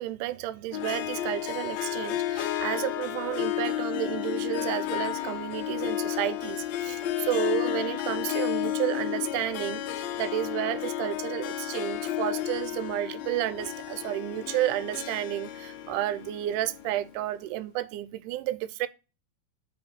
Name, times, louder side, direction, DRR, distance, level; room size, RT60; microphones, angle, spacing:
voice 1, 0.0-18.9, right 14 dB, 85° right, 2.0 m, -31 dB
Harp, 0.7-17.2, left 12 dB, 75° left, 1.7 m, -32 dB
5.1 x 5.0 x 4.2 m
omnidirectional pair, 3.6 m